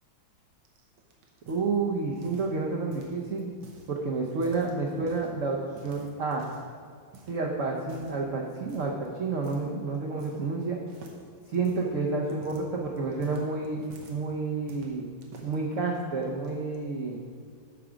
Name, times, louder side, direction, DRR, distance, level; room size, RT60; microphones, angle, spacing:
sound 1, 0.7-2.6 2.9-3.9 4.3-5.3 5.8-6.7 7.1-7.4 7.8-8.2 8.7-9.0 9.4-9.7 9.9-10.6 10.9-14.2 14.7-15.6 16.2-16.8, right 3 dB, 80° right, 1.8 m, -51 dB
voice 1, 1.5-3.5 3.9-5.6 5.8-6.5 7.3-8.9 9.2-10.8 11.5-13.8 14.1-15.1 15.4-17.2, right 3 dB, 55° right, -1 dB, 0.9 m, -30 dB
8.4 x 5.9 x 5.0 m, 2.1 s
omnidirectional pair, 2.1 m